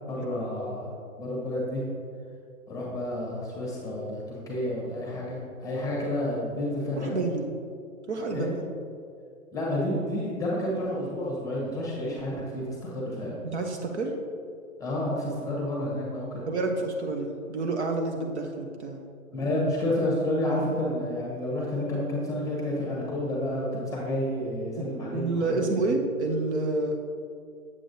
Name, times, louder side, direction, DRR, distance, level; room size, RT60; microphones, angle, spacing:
voice 1, 0.1-0.9 1.2-1.8 2.7-7.2 8.3-8.5 9.5-13.4 14.8-16.4 19.3-25.8, left 1 dB, 10° left, -3 dB, 1.1 m, -30 dB
voice 2, 7.0-7.4 8.1-8.5 13.5-14.2 16.5-19.0 24.8-24.9 25.1-27.0, right 3 dB, 50° right, 3 dB, 0.7 m, -28 dB
7.5 x 7.5 x 2.6 m, 2.4 s
figure-of-eight pair, 120°, 42 cm